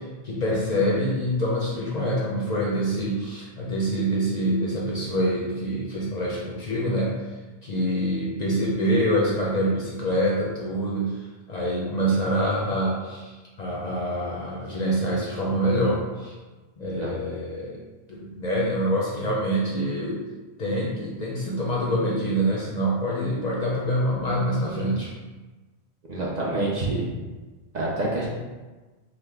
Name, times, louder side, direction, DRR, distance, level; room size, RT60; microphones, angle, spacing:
voice 1, 0.0-7.4 7.6-16.3 16.8-17.8 18.1-20.2 20.6-25.1, equal, 50° left, -5 dB, 0.5 m, -26 dB
voice 2, 26.1-27.1 27.7-28.3, right 2 dB, 50° right, -5 dB, 0.6 m, -27 dB
3.1 x 2.0 x 3.4 m, 1.2 s
omnidirectional pair, 1.1 m